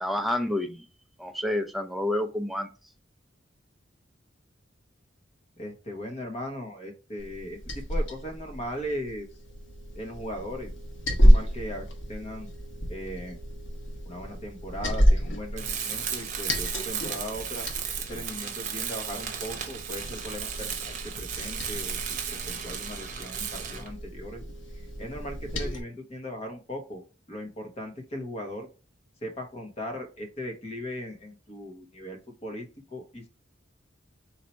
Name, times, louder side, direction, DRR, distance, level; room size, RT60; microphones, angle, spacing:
voice 1, 0.0-0.8 1.2-2.7, left 1 dB, ahead, 5 dB, 0.5 m, -29 dB
voice 2, 5.6-9.3 9.9-10.7 11.1-12.5 12.9-13.4 14.0-17.7 18.1-24.4 25.0-27.0 27.3-28.7 29.2-33.3, equal, 35° left, 3 dB, 1.1 m, -38 dB
Liquid, 7.2-25.8, equal, 80° left, 1.1 m, -29 dB
Tools, 15.6-23.9, right 8 dB, 40° right, 0.8 m, -35 dB
4.2 x 2.8 x 4.4 m, 0.33 s
head